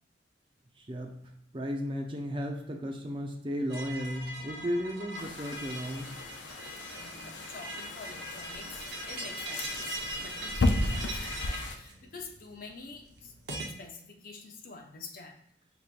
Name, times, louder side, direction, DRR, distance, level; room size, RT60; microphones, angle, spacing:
voice 1, 0.8-1.2 1.5-6.1, equal, 30° right, 2 dB, 0.6 m, -34 dB
sound 1, 3.7-13.7, right 1 dB, 65° right, 0.8 m, -41 dB
sound 2, 5.2-11.8, left 2 dB, 90° left, 0.6 m, -34 dB
voice 2, 6.9-13.3 13.6-15.4, left 4 dB, 50° left, 3 dB, 0.7 m, -47 dB
5.7 x 3.3 x 2.5 m, 0.74 s
head